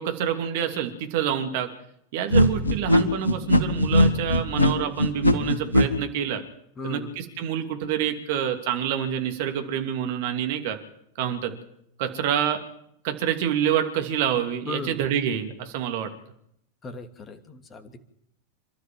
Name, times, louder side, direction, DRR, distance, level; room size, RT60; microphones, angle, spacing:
voice 1, 0.0-1.7 2.1-6.4 6.8-10.8 11.2-11.5 12.0-12.6 13.0-16.1, right 9 dB, 50° right, 6 dB, 2.7 m, -27 dB
sound 1, 2.3-5.9, equal, 80° left, 2.2 m, -19 dB
voice 2, 6.8-7.1 14.7-15.1 16.8-18.0, left 3 dB, 20° left, 7 dB, 2.5 m, -37 dB
27.5 x 12.5 x 7.7 m, 0.72 s
figure-of-eight pair, 90°, 0 cm